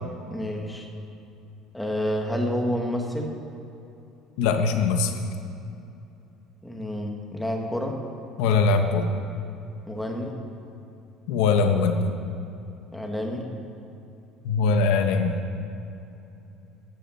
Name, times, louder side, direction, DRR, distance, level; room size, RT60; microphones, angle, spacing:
voice 1, 0.3-0.9 1.7-3.3 6.6-8.0 9.9-10.4 12.9-13.5, equal, 5° left, 1 dB, 1.3 m, -29 dB
voice 2, 4.4-5.2 8.4-9.1 11.3-12.1 14.4-15.4, left 4 dB, 85° left, 6 dB, 1.2 m, -21 dB
15.5 x 12.5 x 4.2 m, 2.8 s
cardioid pair, 165°, 0 cm